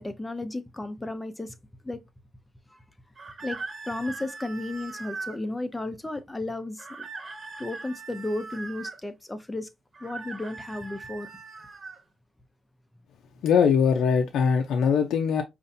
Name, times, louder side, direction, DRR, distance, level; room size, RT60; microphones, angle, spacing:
voice 1, 0.0-1.5 1.8-2.0 2.7-2.8 3.4-3.6 3.9-7.1 7.6-9.7 10.0-11.3, left 2 dB, 10° left, 0.5 m, -33 dB
sound 1, 3.2-5.4 6.8-9.0 9.9-12.0, right 4 dB, 30° right, 1.0 m, -40 dB
voice 2, 13.4-15.4, left 6 dB, 80° left, 0.5 m, -21 dB
5.2 x 2.5 x 2.6 m
cardioid pair, 155°, 0 cm